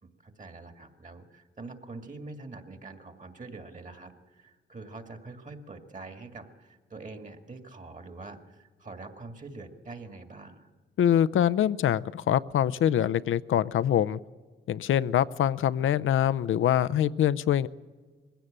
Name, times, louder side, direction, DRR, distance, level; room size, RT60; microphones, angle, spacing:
voice 1, 0.0-10.7, right 3 dB, 40° right, 6 dB, 2.2 m, -45 dB
voice 2, 11.0-14.2 14.7-17.7, left 10 dB, 90° left, 15 dB, 0.5 m, -24 dB
21.5 x 16.0 x 8.8 m, 1.4 s
cardioid pair, 85°, 20 cm